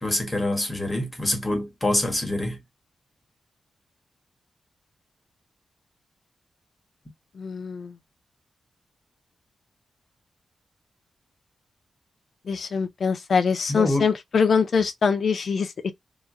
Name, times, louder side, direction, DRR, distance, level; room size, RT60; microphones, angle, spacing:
voice 1, 0.0-2.6 13.7-14.1, left 1 dB, 15° left, 1.5 m, -25 dB
voice 2, 7.4-7.9 12.5-15.9, left 5 dB, 60° left, 0.7 m, -23 dB
3.0 x 2.3 x 3.7 m
wide cardioid pair, 130°, 0 cm